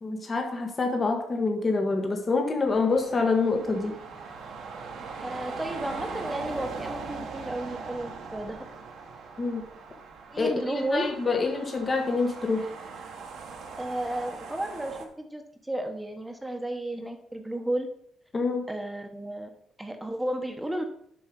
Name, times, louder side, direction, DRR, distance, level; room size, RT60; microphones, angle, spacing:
voice 1, 0.0-3.9 9.4-9.6 10.4-12.7 18.3-18.6, left 3 dB, 35° left, 3 dB, 1.4 m, -26 dB
sound 1, 2.7-15.0, right 5 dB, 75° right, 1.6 m, -40 dB
voice 2, 5.2-8.6 10.3-11.1 13.8-17.9 18.7-19.5 19.8-20.8, right 1 dB, 10° right, 5 dB, 1.2 m, -33 dB
8.4 x 5.6 x 5.4 m, 0.70 s
cardioid pair, 90°, 0 cm